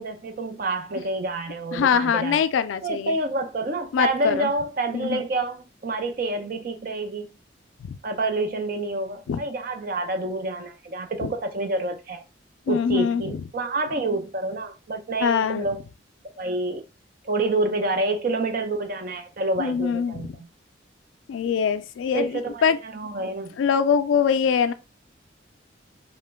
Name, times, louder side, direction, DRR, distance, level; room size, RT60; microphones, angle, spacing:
voice 1, 0.0-2.4 2.8-7.3 8.0-12.2 12.7-15.8 16.4-16.8 17.2-20.3 22.1-23.6, right 2 dB, 45° right, 0.5 m, -28 dB
voice 2, 1.7-3.2 3.9-4.5 4.9-5.2 7.8-8.0 9.3-9.4 11.2-11.3 12.7-13.4 15.2-15.7 19.6-20.4 21.3-22.8 23.6-24.7, left 7 dB, 80° left, 0.3 m, -23 dB
2.9 x 2.1 x 3.3 m
head